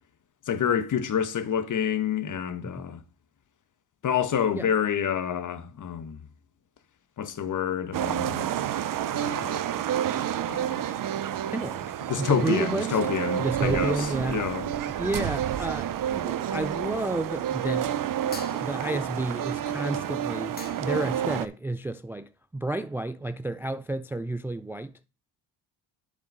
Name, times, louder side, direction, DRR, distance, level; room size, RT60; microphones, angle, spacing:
voice 1, 0.5-3.0 4.0-6.2 7.2-8.5 9.1-9.6 10.5-10.8 12.1-14.7, left 8 dB, 50° left, 1.2 m, -28 dB
sound 1, 7.9-21.5, right 10 dB, 55° right, 0.8 m, -29 dB
voice 2, 11.5-11.9 12.2-13.0 13.4-14.4 14.8-18.0 18.5-24.9, right 2 dB, 5° right, 0.3 m, -31 dB
sound 2, 18.3-19.1 20.2-20.3 20.6-21.1, left 3 dB, 25° left, 1.4 m, -44 dB
7.2 x 5.3 x 5.3 m
supercardioid pair, 70°, 40 cm